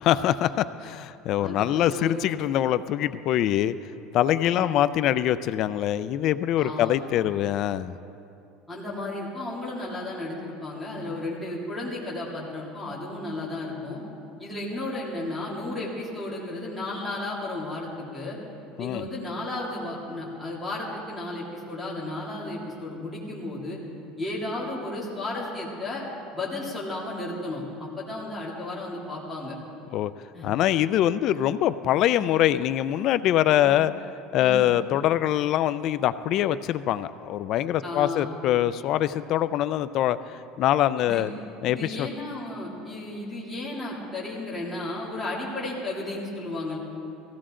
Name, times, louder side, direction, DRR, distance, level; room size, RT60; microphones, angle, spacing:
voice 1, 0.0-3.8 4.1-8.0 18.8-19.0 29.9-30.1 30.4-33.9 34.3-41.3 41.6-42.1, left 12 dB, 40° left, 14 dB, 0.3 m, -24 dB
voice 2, 1.4-2.2 4.4-4.7 6.6-7.0 8.7-14.0 14.4-18.4 18.8-23.8 24.2-26.0 26.3-29.6 30.3-30.5 31.3-31.4 32.1-32.2 33.5-33.7 34.3-34.7 37.8-38.3 41.0-41.3 41.7-46.8, left 2 dB, 5° left, -7 dB, 2.7 m, -34 dB
18.0 x 15.5 x 3.8 m, 2.6 s
cardioid pair, 165°, 0 cm